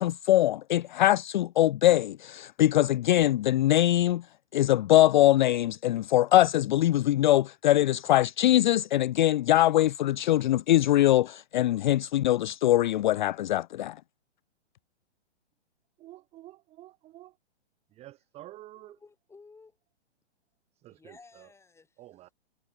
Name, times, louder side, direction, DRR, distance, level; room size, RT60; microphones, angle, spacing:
voice 1, 0.0-4.3 4.5-14.0, left 14 dB, 45° left, 0.5 m, -22 dB
voice 2, 16.0-17.4 17.9-19.0 20.8-21.5 22.0-22.3, right 15 dB, 20° right, 1.1 m, -49 dB
voice 3, 18.8-19.8 20.9-22.3, left 4 dB, 5° left, 7.8 m, -55 dB
hypercardioid pair, 140°, 35 cm